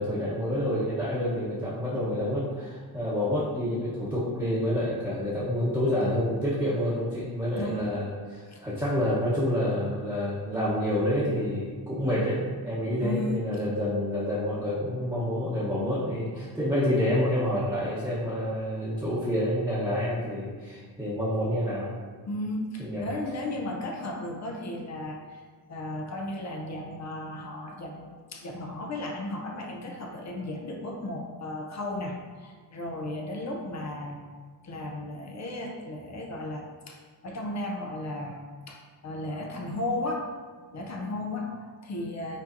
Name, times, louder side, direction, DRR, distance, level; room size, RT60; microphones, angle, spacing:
voice 1, 0.0-12.4 12.6-21.9 22.8-23.1, left 1 dB, 5° right, -11 dB, 0.9 m, -28 dB
voice 2, 13.0-13.5 22.3-25.4 25.7-34.2 34.6-38.4 38.7-40.3 40.7-42.4, left 1 dB, 45° left, 1 dB, 0.6 m, -35 dB
5.3 x 3.8 x 2.6 m, 1.5 s
cardioid pair, 120°, 39 cm